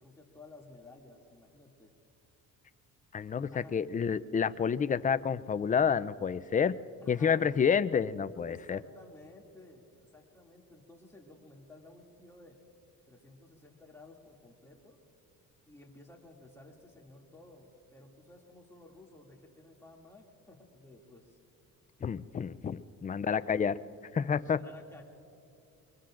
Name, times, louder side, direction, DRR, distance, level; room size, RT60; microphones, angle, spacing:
voice 1, 0.0-1.9 3.5-3.8 7.0-7.5 8.4-12.6 13.1-15.0 15.7-21.4 23.1-23.6 24.4-25.0, left 2 dB, 10° left, -2 dB, 2.5 m, -55 dB
voice 2, 3.1-6.7 7.1-8.8 22.0-23.7 24.1-24.6, left 7 dB, 25° left, 14 dB, 0.4 m, -29 dB
24.0 x 22.5 x 2.5 m, 2.6 s
cardioid pair, 85°, 34 cm